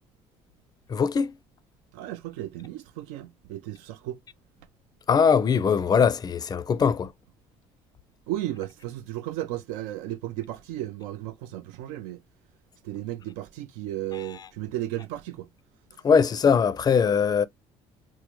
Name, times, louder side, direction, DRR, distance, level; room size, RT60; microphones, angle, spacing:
voice 1, 0.9-1.3 5.1-7.1 16.0-17.4, left 6 dB, 30° left, 0.4 m, -21 dB
voice 2, 1.9-4.2 8.3-12.2 12.8-15.5, right 14 dB, 85° right, 0.4 m, -34 dB
3.5 x 2.1 x 2.9 m
supercardioid pair, 80°, 13 cm